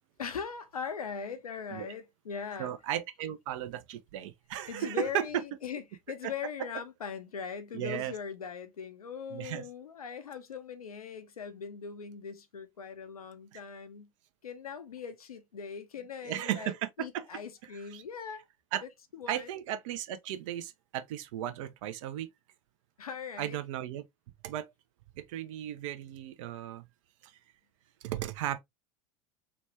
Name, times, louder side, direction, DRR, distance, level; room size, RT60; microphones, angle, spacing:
voice 1, 0.2-2.7 4.7-14.1 14.4-18.4 19.1-19.5 23.0-23.6, left 6 dB, 85° left, 0.6 m, -40 dB
voice 2, 2.6-5.4 6.2-6.3 7.7-8.1 9.3-9.6 13.5-13.6 16.2-17.3 17.9-18.0 18.7-18.8 19.3-22.3 23.4-24.0 24.4-24.7 25.2-26.8 27.2-27.3 28.0-28.6, right 11 dB, 60° right, 0.6 m, -35 dB
3.0 x 2.2 x 2.8 m
hypercardioid pair, 85°, 18 cm